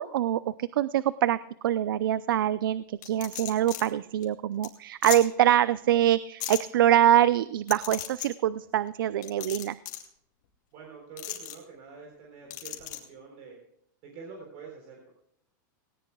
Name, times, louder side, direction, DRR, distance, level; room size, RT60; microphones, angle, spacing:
voice 1, 0.0-1.4 1.6-9.8, right 11 dB, 90° right, 16 dB, 0.5 m, -24 dB
sound 1, 3.0-3.8 4.2-4.3 4.6-4.7 5.0-5.2 6.4-6.6 7.7-8.3 9.2-10.1 11.2-11.5 12.5-13.0, left 13 dB, 60° left, 3.0 m, -35 dB
voice 2, 10.7-13.6 14.0-15.0, right 5 dB, 40° right, 0 dB, 4.0 m, -46 dB
19.0 x 18.5 x 2.3 m, 0.74 s
supercardioid pair, 175°, 11 cm